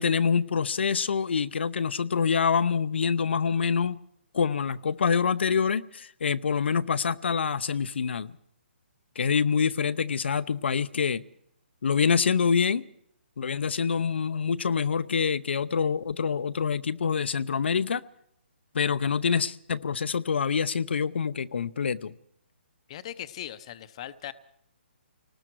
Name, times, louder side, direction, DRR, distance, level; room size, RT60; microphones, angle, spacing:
voice 1, 0.0-4.0 4.3-8.3 9.2-11.2 11.8-12.8 13.4-18.0 18.7-22.1, left 6 dB, 65° left, 0.7 m, -26 dB
voice 2, 9.3-9.7 22.9-24.3, left 11 dB, 30° left, 0.8 m, -40 dB
30.0 x 19.5 x 4.7 m
hypercardioid pair, 170°, 7 cm